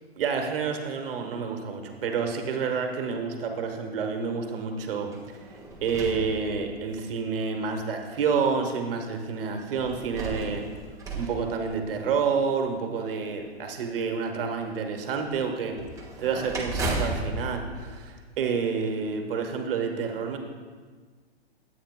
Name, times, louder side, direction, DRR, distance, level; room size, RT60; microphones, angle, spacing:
voice 1, 0.2-5.5 5.8-10.6 11.1-15.8 16.2-20.4, right 5 dB, 60° right, 4 dB, 1.3 m, -29 dB
sound 1, 5.1-7.1 7.8-7.9 9.8-12.3 15.7-18.8, right 2 dB, 10° right, 1.2 m, -35 dB
13.0 x 8.5 x 2.2 m, 1.5 s
hypercardioid pair, 120°, 32 cm